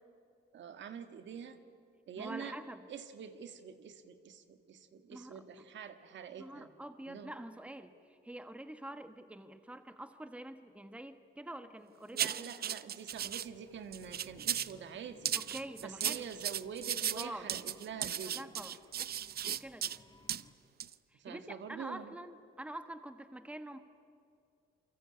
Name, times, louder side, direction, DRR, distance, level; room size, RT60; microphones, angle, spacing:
voice 1, 0.5-1.6 2.1-2.6 2.9-6.7 7.1-7.3 12.1-15.3 15.8-18.4 21.1-22.2, right 7 dB, 65° right, 9 dB, 1.7 m, -46 dB
voice 2, 2.2-2.8 5.1-5.4 6.4-7.9 8.2-12.5 15.3-16.3 17.0-17.5 18.2-19.1 19.4-20.0 21.1-23.8, right 1 dB, 5° right, 9 dB, 1.6 m, -46 dB
sound 1, 12.2-13.5 13.9-14.7 15.2-20.0 20.3-20.4 20.8-20.9, right 10 dB, 50° right, 0.7 m, -36 dB
sound 2, 13.1-20.5, left 2 dB, 20° left, 2.1 m, -62 dB
28.5 x 23.5 x 8.8 m, 2.4 s
cardioid pair, 90°, 20 cm